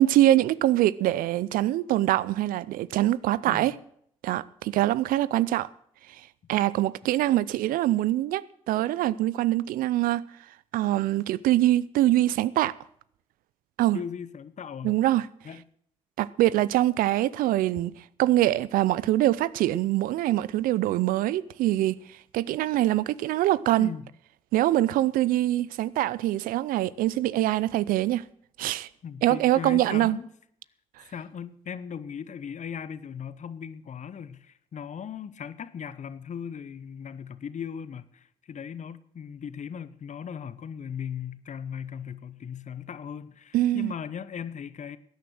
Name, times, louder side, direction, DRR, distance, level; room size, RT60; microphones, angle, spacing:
voice 1, 0.0-3.7 4.2-5.7 6.5-10.2 10.7-12.7 13.8-14.0 14.8-15.3 16.2-17.9 18.2-22.0 22.3-23.9 24.5-28.2 28.6-28.9 29.2-30.2 43.5-43.9, right 14 dB, 80° right, 0.4 m, -24 dB
voice 2, 13.9-15.0 15.4-15.6 23.8-24.0 29.0-30.3 31.1-45.0, left 7 dB, 55° left, 0.9 m, -38 dB
16.0 x 9.4 x 6.4 m
hypercardioid pair, 45°, 14 cm